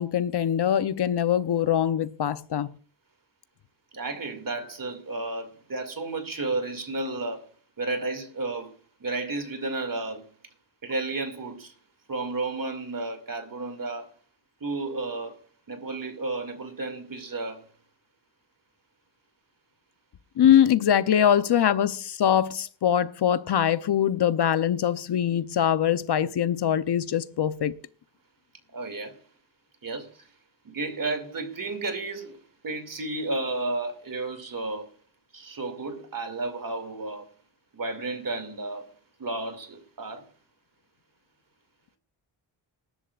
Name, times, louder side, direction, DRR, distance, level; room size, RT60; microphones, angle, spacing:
voice 1, 0.0-2.7 20.4-27.7, left 9 dB, 60° left, 0.7 m, -23 dB
voice 2, 3.9-7.5 7.8-8.7 9.0-10.2 10.8-11.7 12.1-14.1 14.6-15.4 15.7-17.6 28.7-29.2 29.8-30.3 30.6-34.9 35.3-37.3 37.7-38.9 39.2-40.3, right 2 dB, 45° right, 2.3 m, -32 dB
20.5 x 11.0 x 2.4 m
cardioid pair, 85°, 47 cm